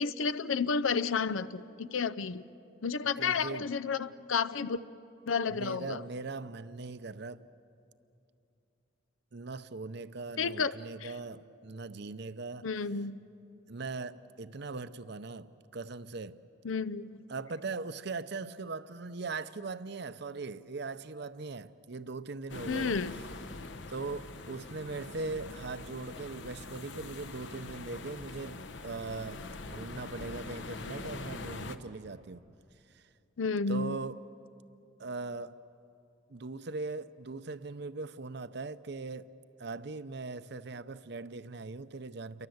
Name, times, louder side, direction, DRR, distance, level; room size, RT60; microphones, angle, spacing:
voice 1, 0.0-2.4 2.8-4.8 5.3-6.0 10.4-11.1 12.6-13.2 16.6-17.1 22.7-23.1 33.4-34.0, left 5 dB, 90° left, 0.7 m, -31 dB
voice 2, 3.2-3.7 5.5-7.5 9.3-12.7 13.7-16.4 17.3-22.9 23.9-32.4 32.9-33.0 33.7-34.2 35.0-35.6 36.3-39.3 39.6-42.5, right 3 dB, 60° right, 0.7 m, -40 dB
sound 1, 22.5-31.8, left 3 dB, 70° left, 1.0 m, -43 dB
28.5 x 23.5 x 7.9 m
head